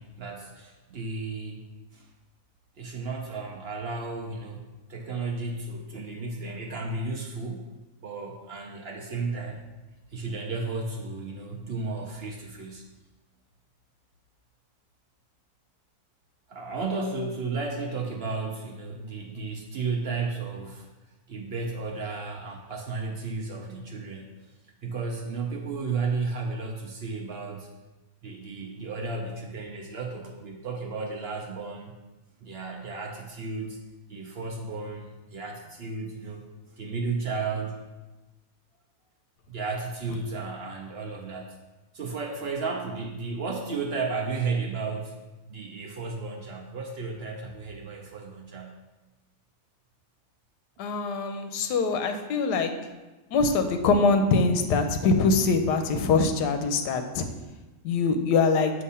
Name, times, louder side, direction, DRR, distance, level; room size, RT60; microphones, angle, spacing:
voice 1, 0.0-1.6 1.9-2.1 2.8-4.6 4.9-7.7 8.0-9.6 10.1-12.8 16.5-20.9 21.3-24.5 24.8-27.7 28.2-31.9 32.4-33.8 34.1-36.4 36.7-37.8 39.5-41.6 41.9-45.2 45.5-48.8, right 4 dB, 65° right, 0 dB, 0.6 m, -33 dB
voice 2, 50.8-52.7 53.3-57.3 57.8-58.7, left 4 dB, 85° left, 7 dB, 1.2 m, -23 dB
6.7 x 2.8 x 5.4 m, 1.1 s
omnidirectional pair, 1.7 m